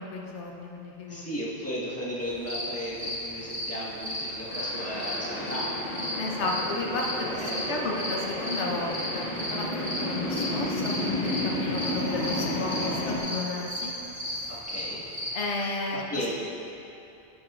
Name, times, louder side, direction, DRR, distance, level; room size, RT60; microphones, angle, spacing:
voice 1, 0.0-1.2 6.2-9.7 10.0-10.9 11.2-13.9 14.3-14.5 15.3-16.0, left 2 dB, 80° left, -1 dB, 1.1 m, -33 dB
voice 2, 1.1-5.7 7.3-7.6 14.5-15.0 16.1-16.3, equal, 15° left, -7 dB, 1.4 m, -35 dB
sound 1, 2.2-15.3, left 1 dB, 5° right, 1.8 m, -35 dB
sound 2, 4.5-13.2, left 1 dB, 35° left, 1.4 m, -32 dB
10.0 x 8.4 x 2.4 m, 2.9 s
omnidirectional pair, 1.2 m